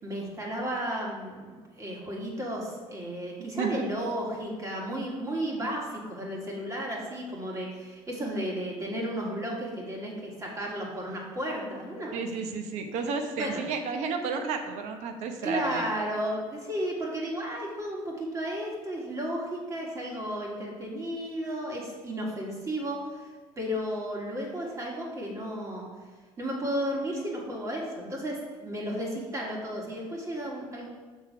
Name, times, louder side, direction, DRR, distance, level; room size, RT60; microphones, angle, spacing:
voice 1, 0.0-12.2 13.4-13.6 15.4-25.9 26.4-30.9, equal, 25° right, -2 dB, 1.8 m, -33 dB
voice 2, 12.1-15.9, right 5 dB, 70° right, 6 dB, 0.9 m, -32 dB
6.4 x 3.7 x 5.9 m, 1.4 s
cardioid pair, 110°, 12 cm